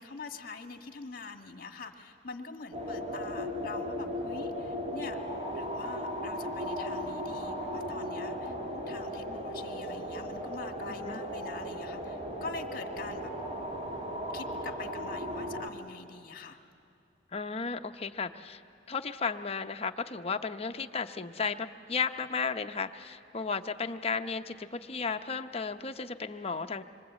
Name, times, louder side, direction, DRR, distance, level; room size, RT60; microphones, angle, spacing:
voice 1, 0.0-5.2 5.5-13.3 14.3-16.6, left 4 dB, 55° left, 5 dB, 1.7 m, -44 dB
sound 1, 2.7-15.7, equal, 35° right, 2.5 m, -36 dB
voice 2, 10.9-11.2 17.3-18.6 18.9-26.8, left 5 dB, 35° left, 7 dB, 0.7 m, -34 dB
26.5 x 23.5 x 8.2 m, 2.5 s
head